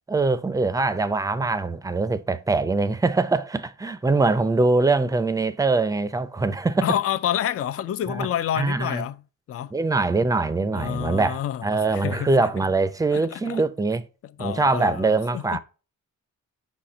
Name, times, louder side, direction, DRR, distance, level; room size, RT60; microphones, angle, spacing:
voice 1, 0.1-6.9 8.1-8.3 8.6-9.0 9.7-14.0 14.4-15.6, right 3 dB, 10° right, 0.5 m, -23 dB
voice 2, 6.8-9.2 9.5-9.7 10.7-12.5 13.1-13.6 14.4-15.6, left 10 dB, 45° left, 0.4 m, -28 dB
5.7 x 4.3 x 4.8 m
wide cardioid pair, 135°, 32 cm